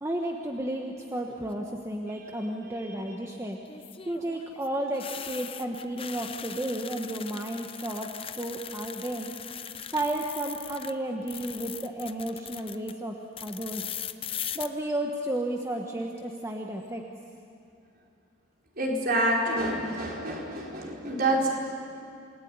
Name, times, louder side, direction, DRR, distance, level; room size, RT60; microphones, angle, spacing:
voice 1, 0.0-3.6 4.1-9.3 9.9-13.9 14.5-17.1, right 1 dB, 15° right, 1 dB, 1.2 m, -33 dB
sound 1, 1.3-1.8 3.7-10.9 11.2-12.9 13.4-14.7, left 9 dB, 25° left, 0.7 m, -40 dB
voice 2, 18.8-21.5, right 1 dB, 45° right, -2 dB, 4.9 m, -27 dB
28.0 x 19.0 x 9.6 m, 2.5 s
head